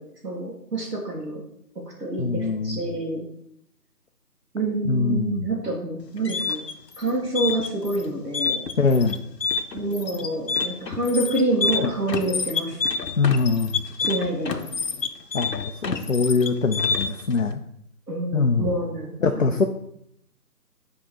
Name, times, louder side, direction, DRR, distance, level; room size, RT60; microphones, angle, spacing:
voice 1, 0.2-1.4 2.0-3.3 4.5-6.6 7.0-8.7 9.7-12.8 14.0-14.6 18.1-19.5, right 2 dB, 80° right, -6 dB, 2.0 m, -27 dB
voice 2, 2.2-2.8 4.9-5.5 8.8-9.2 11.8-11.9 13.2-13.8 15.3-17.6 18.3-18.7 19.2-19.6, left 4 dB, 55° left, 6 dB, 0.5 m, -23 dB
sound 1, 6.0-17.3, left 5 dB, 80° left, 0.8 m, -28 dB
9.1 x 3.7 x 4.3 m, 0.73 s
figure-of-eight pair, 165°, 48 cm